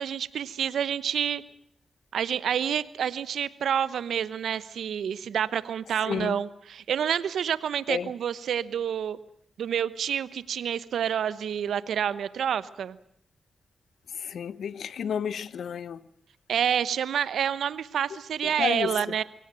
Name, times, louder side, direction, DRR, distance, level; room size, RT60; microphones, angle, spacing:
voice 1, 0.0-1.4 2.1-9.2 9.6-12.9 16.5-19.2, right 8 dB, 85° right, 1.0 m, -28 dB
voice 2, 6.0-6.4 7.9-8.1 14.1-16.0 18.4-19.1, left 7 dB, 80° left, 0.9 m, -31 dB
23.5 x 17.5 x 9.0 m
cardioid pair, 60°, 0 cm